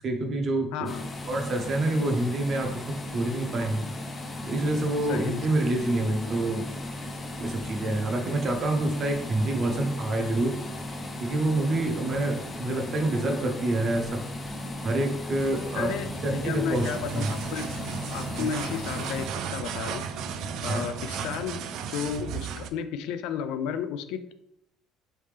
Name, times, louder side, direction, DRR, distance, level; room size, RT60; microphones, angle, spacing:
voice 1, 0.0-0.7 1.3-2.7 3.1-3.8 4.5-6.6 7.4-10.6 11.2-14.1 14.8-15.9 16.2-16.9 17.1-17.3 18.4-18.5 20.7-20.8, right 2 dB, 30° right, 3 dB, 0.7 m, -27 dB
voice 2, 0.7-1.1 5.1-5.5 15.7-17.7 18.1-20.1 20.3-24.3, left 8 dB, 80° left, 10 dB, 0.3 m, -33 dB
sound 1, 0.9-19.3, left 1 dB, 20° left, 0.4 m, -36 dB
sound 2, 15.4-21.5, right 3 dB, 90° right, 0.6 m, -42 dB
sound 3, 16.7-22.7, right 7 dB, 55° right, 0.3 m, -35 dB
4.1 x 3.3 x 3.3 m, 0.77 s
cardioid pair, 175°, 0 cm